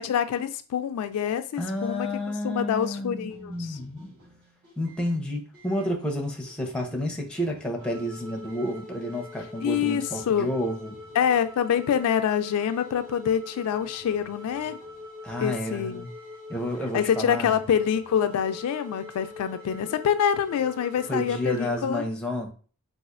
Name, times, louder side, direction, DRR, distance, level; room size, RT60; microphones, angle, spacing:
voice 1, 0.0-2.1 2.4-3.8 9.6-10.5 11.2-14.8 15.4-16.0 16.9-22.0, left 8 dB, 75° left, 13 dB, 0.3 m, -26 dB
voice 2, 1.6-4.1 4.8-11.0 15.2-16.1 16.5-17.5 21.1-22.5, left 1 dB, 5° left, 1 dB, 0.6 m, -30 dB
sound 1, 3.2-21.8, left 2 dB, 55° right, 1.3 m, -44 dB
4.0 x 2.4 x 2.4 m, 0.39 s
head